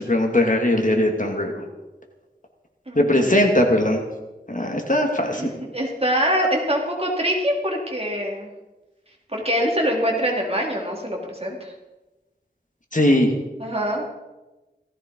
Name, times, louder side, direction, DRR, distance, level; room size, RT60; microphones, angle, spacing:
voice 1, 0.0-1.6 3.0-4.0 4.5-5.5 12.9-13.3, left 1 dB, 50° left, 2 dB, 2.7 m, -19 dB
voice 2, 2.9-3.4 5.3-8.5 9.3-11.7 13.6-14.0, equal, 35° right, -1 dB, 3.9 m, -24 dB
17.5 x 15.5 x 4.8 m, 1.1 s
wide cardioid pair, 45°, 17 cm